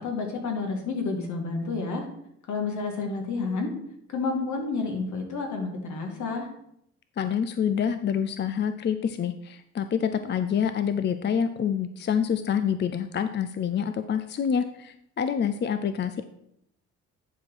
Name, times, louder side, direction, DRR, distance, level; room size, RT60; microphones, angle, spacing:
voice 1, 0.0-2.1 2.5-3.7 4.1-6.5, left 4 dB, 70° left, 3 dB, 2.1 m, -30 dB
voice 2, 7.2-16.3, left 7 dB, 35° left, 10 dB, 0.5 m, -27 dB
9.8 x 4.6 x 4.7 m, 0.75 s
cardioid pair, 90°, 30 cm